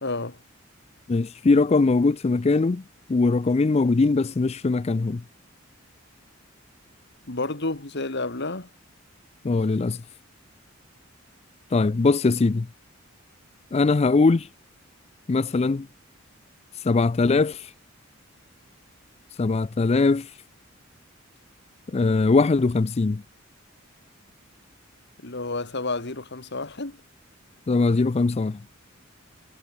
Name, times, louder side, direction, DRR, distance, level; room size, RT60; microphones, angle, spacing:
voice 1, 0.0-0.4 7.3-8.7 25.2-27.0, left 3 dB, 55° left, 2.2 m, -30 dB
voice 2, 1.1-2.8 3.1-5.2 9.4-10.0 11.7-12.7 13.7-14.5 15.3-15.9 16.8-17.7 19.4-20.3 21.9-23.2 27.7-28.6, left 3 dB, 30° left, 0.4 m, -21 dB
head